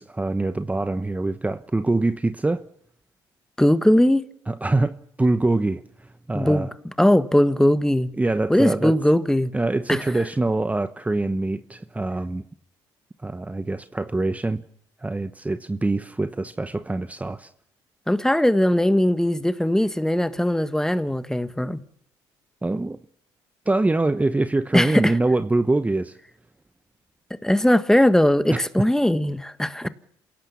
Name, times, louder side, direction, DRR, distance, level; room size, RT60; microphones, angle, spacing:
voice 1, 0.0-2.6 4.5-5.8 6.3-6.7 8.2-9.0 9.5-12.4 13.2-14.6 15.0-17.5 22.6-23.0 23.7-26.2 28.5-28.6, right 2 dB, 15° right, 1.0 m, -24 dB
voice 2, 3.6-4.3 6.3-6.7 7.0-8.1 8.5-9.5 9.9-10.0 18.1-21.8 24.7-25.1 27.4-29.9, left 1 dB, 5° left, 1.5 m, -19 dB
27.5 x 17.0 x 7.2 m
supercardioid pair, 65°, 10 cm